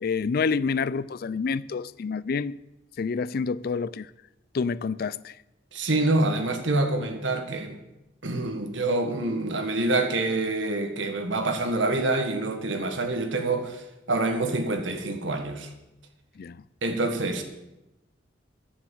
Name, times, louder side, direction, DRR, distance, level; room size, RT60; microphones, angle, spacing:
voice 1, 0.0-2.6 3.0-4.1 4.5-5.3 16.4-16.6, left 5 dB, 55° left, 0.4 m, -28 dB
voice 2, 5.7-7.8 8.2-15.7 16.8-17.4, right 2 dB, 80° right, 1.7 m, -26 dB
10.5 x 8.0 x 7.8 m
head